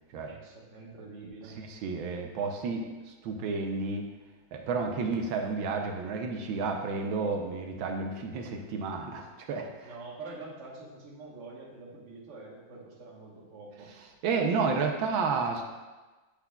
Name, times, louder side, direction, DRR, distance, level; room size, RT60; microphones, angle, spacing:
voice 1, 0.2-1.6 9.8-13.9, right 3 dB, 40° right, -3 dB, 1.3 m, -46 dB
voice 2, 1.6-4.1 4.5-9.9 14.2-15.6, right 4 dB, 80° right, 3 dB, 1.4 m, -31 dB
8.3 x 5.8 x 2.3 m, 1.2 s
omnidirectional pair, 2.2 m